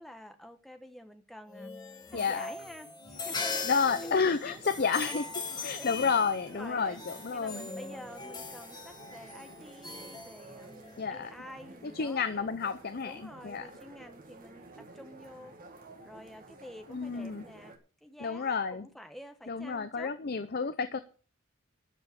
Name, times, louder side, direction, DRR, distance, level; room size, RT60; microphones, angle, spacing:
voice 1, 0.0-1.7 2.1-5.2 5.6-5.9 6.5-7.0 7.3-12.6 13.0-14.7 14.9-15.5 16.0-17.7 18.0-20.1, equal, ahead, 6 dB, 1.1 m, -49 dB
sound 1, 1.5-11.0, left 4 dB, 20° left, 1.5 m, -40 dB
voice 2, 2.1-2.5 3.7-5.2 5.6-7.7 11.0-11.3 11.9-13.7 16.9-17.4 18.2-18.9 19.5-21.0, left 5 dB, 45° left, 11 dB, 0.6 m, -30 dB
sound 2, 3.1-17.8, right 2 dB, 40° right, 2.0 m, -52 dB
13.0 x 5.5 x 8.3 m, 0.40 s
head